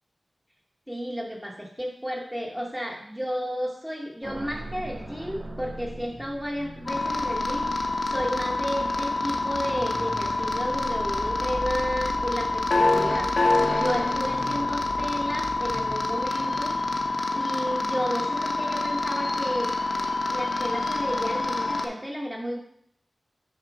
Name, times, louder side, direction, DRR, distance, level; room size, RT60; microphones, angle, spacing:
voice 1, 0.9-16.8 17.3-19.7 20.3-22.6, equal, 5° right, -2 dB, 0.8 m, -32 dB
sound 1, 4.2-17.3, right 1 dB, 65° right, 1.9 m, -40 dB
sound 2, 6.9-21.9, left 2 dB, 65° left, 0.9 m, -27 dB
6.5 x 4.3 x 5.0 m, 0.74 s
wide cardioid pair, 100°, 0 cm